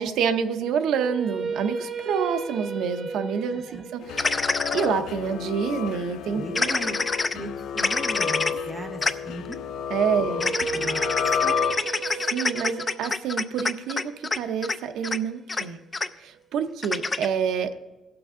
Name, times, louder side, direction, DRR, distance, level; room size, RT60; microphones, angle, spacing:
voice 1, 0.0-6.7 9.9-10.5 12.3-15.8 16.2-17.8, right 7 dB, 80° right, 8 dB, 0.7 m, -27 dB
sound 1, 0.8-6.9 10.2-16.3, right 5 dB, 40° right, 0.7 m, -36 dB
voice 2, 3.5-3.9 6.3-6.9 7.3-9.6 10.4-11.0 11.4-11.7, right 1 dB, 15° right, 3 dB, 1.3 m, -38 dB
sound 2, 4.0-12.2, left 8 dB, 75° left, 0.5 m, -31 dB
sound 3, 4.2-4.9 6.6-7.3 7.8-8.5 9.0-9.1 9.5-9.6 10.4-14.4 14.6-14.8 15.0-15.2 15.5-15.6 15.9-16.1 16.8-17.3, left 3 dB, 20° left, 0.4 m, -26 dB
17.0 x 6.0 x 3.7 m, 1.1 s
cardioid pair, 150°, 0 cm